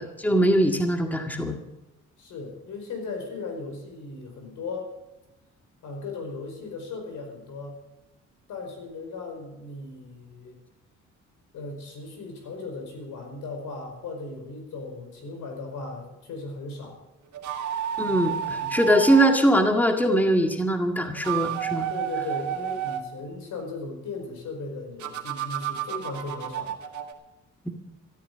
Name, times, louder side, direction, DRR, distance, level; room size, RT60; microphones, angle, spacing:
voice 1, 0.0-1.6 18.0-21.9, right 1 dB, 5° left, 4 dB, 1.9 m, -22 dB
voice 2, 2.2-4.9 5.8-7.8 8.5-10.6 11.5-17.0 21.9-26.8, left 3 dB, 80° left, 4 dB, 5.0 m, -37 dB
sound 1, 17.3-19.4 21.1-23.1 25.0-27.1, right 9 dB, 70° right, 2.0 m, -31 dB
13.5 x 13.5 x 6.8 m, 0.95 s
cardioid pair, 90°, 30 cm